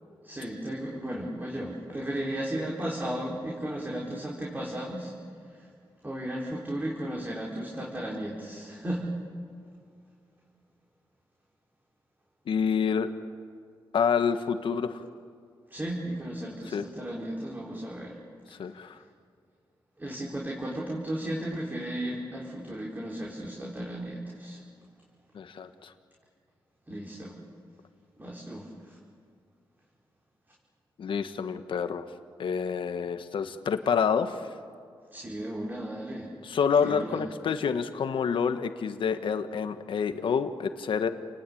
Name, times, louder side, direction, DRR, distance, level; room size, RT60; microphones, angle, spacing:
voice 1, 0.2-5.1 5.6-5.7 6.0-9.0 15.7-18.2 20.0-24.6 26.9-27.4 28.2-29.0 35.1-36.3 36.8-37.3, right 1 dB, 20° right, -3 dB, 4.3 m, -35 dB
voice 2, 12.5-13.1 13.9-15.0 16.7-16.9 18.6-19.0 25.3-25.9 31.0-32.0 32.4-34.4 36.4-41.1, left 6 dB, 75° left, 8 dB, 1.4 m, -28 dB
30.0 x 19.5 x 8.7 m, 2.2 s
cardioid pair, 90°, 9 cm